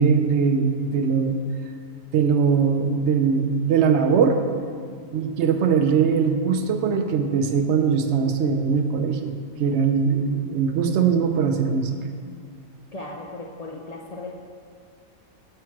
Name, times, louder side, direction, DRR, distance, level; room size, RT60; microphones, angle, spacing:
voice 1, 0.0-1.4 2.1-4.4 5.1-9.3 9.6-12.0, right 6 dB, 65° right, 6 dB, 0.8 m, -21 dB
voice 2, 12.9-14.3, left 2 dB, 80° left, -1 dB, 0.3 m, -36 dB
7.3 x 5.7 x 4.5 m, 2.2 s
omnidirectional pair, 1.4 m